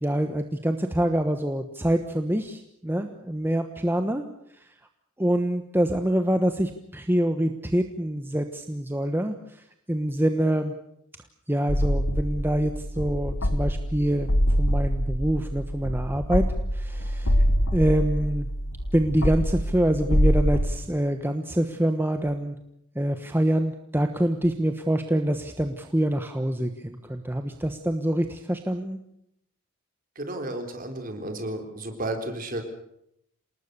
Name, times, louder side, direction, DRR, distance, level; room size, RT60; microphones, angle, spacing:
voice 1, 0.0-4.2 5.2-10.7 11.5-14.3 14.6-16.5 16.7-17.3 17.7-18.5 18.9-22.6 22.9-29.0, right 1 dB, 10° right, 6 dB, 1.1 m, -25 dB
sound 1, 11.7-20.7, equal, 80° left, 2.1 m, -25 dB
voice 2, 30.2-32.6, right 1 dB, 40° right, 5 dB, 3.8 m, -32 dB
27.5 x 19.5 x 6.8 m, 0.76 s
head